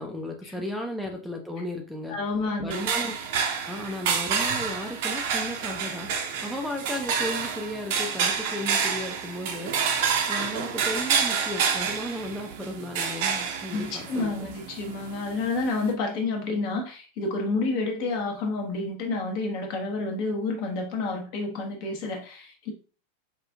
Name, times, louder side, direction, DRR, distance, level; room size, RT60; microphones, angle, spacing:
voice 1, 0.0-2.2 2.6-3.1 3.7-14.5, left 1 dB, ahead, 1 dB, 0.4 m, -35 dB
voice 2, 2.1-2.8 13.7-22.7, left 3 dB, 45° left, 3 dB, 0.9 m, -29 dB
sound 1, 2.7-15.9, right 6 dB, 50° right, 0.7 m, -29 dB
4.8 x 2.5 x 2.3 m, 0.38 s
figure-of-eight pair, 90°, 0 cm